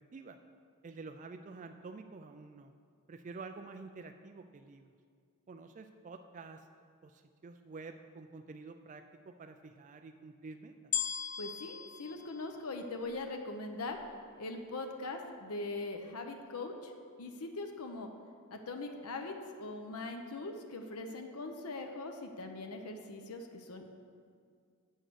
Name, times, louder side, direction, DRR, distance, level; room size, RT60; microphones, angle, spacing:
voice 1, 0.8-2.7 3.1-4.9 5.5-6.7 7.0-10.9, right 4 dB, 35° right, 6 dB, 0.3 m, -49 dB
sound 1, 10.9-13.3 14.0-14.1, left 8 dB, 35° left, 0.5 m, -38 dB
voice 2, 11.4-14.0 14.4-16.9 17.2-18.1 18.5-23.9, left 2 dB, 85° left, 4 dB, 0.8 m, -41 dB
8.1 x 6.4 x 6.2 m, 2.1 s
head